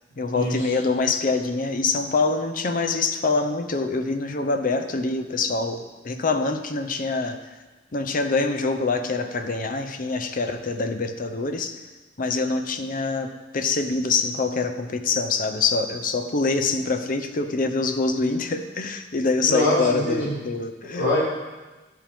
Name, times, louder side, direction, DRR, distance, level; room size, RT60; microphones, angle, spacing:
voice 1, 0.2-7.4 7.9-11.8 12.2-21.1, left 3 dB, 50° left, 8 dB, 0.7 m, -25 dB
voice 2, 19.5-20.3 20.8-21.2, left 1 dB, 90° left, -7 dB, 3.5 m, -23 dB
11.0 x 7.5 x 3.5 m, 1.2 s
head